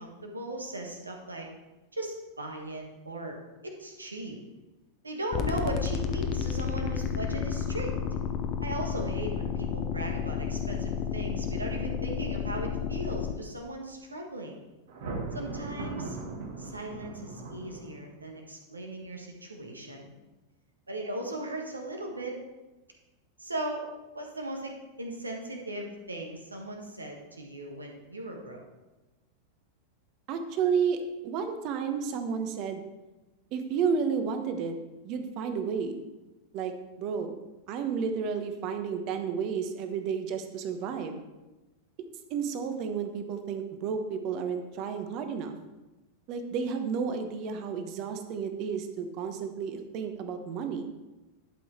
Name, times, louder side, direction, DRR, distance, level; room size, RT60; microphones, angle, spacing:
voice 1, 0.0-1.5 1.9-3.4 3.6-4.4 5.0-7.9 8.6-14.6 15.3-16.2 16.6-20.1 20.9-22.4 23.4-23.9 24.1-24.7 25.0-28.6, right 1 dB, 80° right, 1 dB, 1.6 m, -37 dB
sound 1, 5.3-13.3, left 7 dB, 35° left, 0.8 m, -31 dB
Thunder, 14.9-18.2, right 3 dB, 60° right, 1.6 m, -38 dB
voice 2, 30.3-32.8 33.5-34.7 35.0-36.0 36.5-36.7 37.0-37.3 37.7-41.2 42.3-45.6 46.3-50.9, right 6 dB, 40° right, 7 dB, 1.1 m, -31 dB
11.5 x 5.6 x 4.5 m, 1.1 s
figure-of-eight pair, 90°, 0 cm